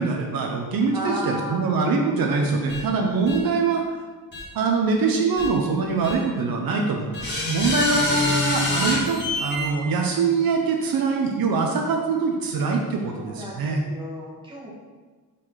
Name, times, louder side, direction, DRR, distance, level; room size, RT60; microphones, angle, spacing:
voice 1, 0.0-3.8 4.5-13.8, right 4 dB, 75° right, 2 dB, 0.9 m, -23 dB
voice 2, 0.9-1.7 13.1-14.7, right 1 dB, 15° right, -5 dB, 1.7 m, -34 dB
sound 1, 2.7-2.8 3.3-3.4 4.3-4.4 5.4-5.5 6.0-6.1 7.1-9.7, left 1 dB, 30° left, 1.7 m, -25 dB
4.9 x 4.3 x 5.6 m, 1.4 s
wide cardioid pair, 145°, 36 cm